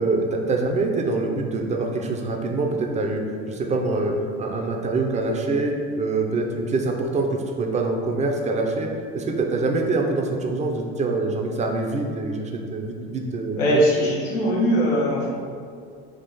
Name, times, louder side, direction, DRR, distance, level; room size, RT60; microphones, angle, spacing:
voice 1, 0.0-13.8, right 3 dB, 20° right, 2 dB, 0.5 m, -25 dB
voice 2, 13.6-15.3, equal, 80° left, -3 dB, 1.0 m, -20 dB
3.7 x 2.4 x 4.1 m, 2.2 s
supercardioid pair, 75°, 31 cm